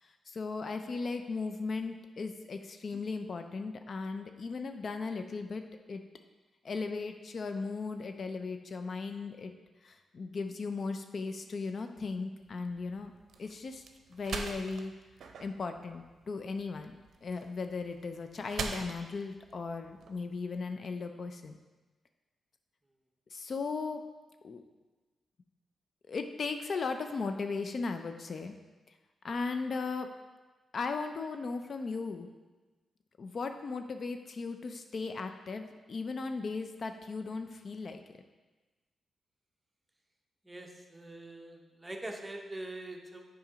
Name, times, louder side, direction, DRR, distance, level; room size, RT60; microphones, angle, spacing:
voice 1, 0.0-5.6 5.9-6.0 6.6-9.5 9.8-13.1 13.4-13.8 14.1-14.9 15.4-21.6 23.3-24.0 24.4-24.6 26.1-28.5 29.2-30.1 30.7-32.3 33.2-38.0, left 4 dB, 55° left, 7 dB, 0.4 m, -37 dB
sound 1, 12.4-20.6, right 5 dB, 75° right, 0.6 m, -44 dB
voice 2, 40.4-43.3, right 1 dB, 15° right, 2 dB, 0.9 m, -43 dB
7.2 x 3.7 x 5.0 m, 1.2 s
cardioid pair, 85°, 0 cm